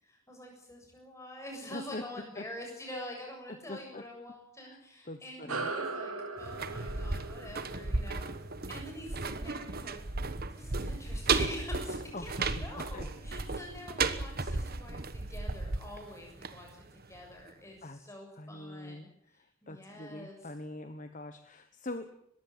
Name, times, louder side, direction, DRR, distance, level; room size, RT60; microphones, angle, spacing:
voice 1, 0.0-8.3 8.7-10.0 10.5-20.5, left 1 dB, 15° left, 1 dB, 7.3 m, -46 dB
voice 2, 1.7-2.0 2.4-2.5 2.9-3.0 3.5-4.0 4.7-4.8 5.1-5.7 12.1-12.5 12.9-13.1 17.8-18.0 18.4-19.1 19.7-22.2, left 2 dB, 35° left, 9 dB, 1.2 m, -43 dB
sound 1, 5.5-10.3, right 3 dB, 85° right, 3.1 m, -40 dB
sound 2, 6.4-17.2 17.5-17.6, right 3 dB, 45° right, 1.2 m, -34 dB
21.5 x 15.5 x 9.6 m, 0.73 s
head